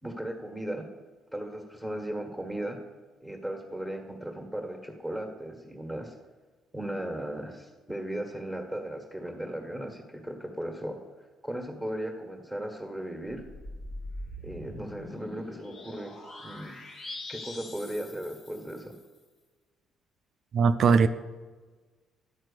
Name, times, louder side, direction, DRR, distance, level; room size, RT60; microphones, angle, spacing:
voice 1, 0.0-0.9 1.3-2.8 3.2-6.1 6.7-11.0 11.4-13.4 14.4-16.1 16.4-16.7 17.3-18.9, right 1 dB, ahead, 3 dB, 1.5 m, -36 dB
sound 1, 13.3-19.1, left 1 dB, 55° left, 1.3 m, -43 dB
voice 2, 20.5-21.1, right 5 dB, 55° right, 11 dB, 0.4 m, -20 dB
11.0 x 4.4 x 6.7 m, 1.4 s
figure-of-eight pair, 50°, 0 cm